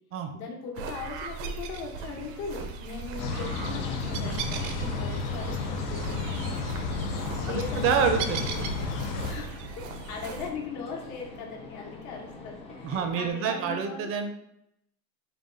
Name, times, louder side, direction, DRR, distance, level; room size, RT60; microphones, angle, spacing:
voice 1, 0.3-8.3 9.2-14.1, left 5 dB, 50° left, -1 dB, 1.1 m, -39 dB
sound 1, 0.7-10.5, right 6 dB, 80° right, 0.7 m, -38 dB
sound 2, 3.2-9.3, left 4 dB, 70° left, 0.7 m, -32 dB
sound 3, 3.4-13.3, left 3 dB, 15° left, 0.5 m, -46 dB
voice 2, 7.5-8.5 12.8-14.3, right 6 dB, 35° right, 6 dB, 0.5 m, -27 dB
3.9 x 2.3 x 3.8 m, 0.79 s
supercardioid pair, 135°, 37 cm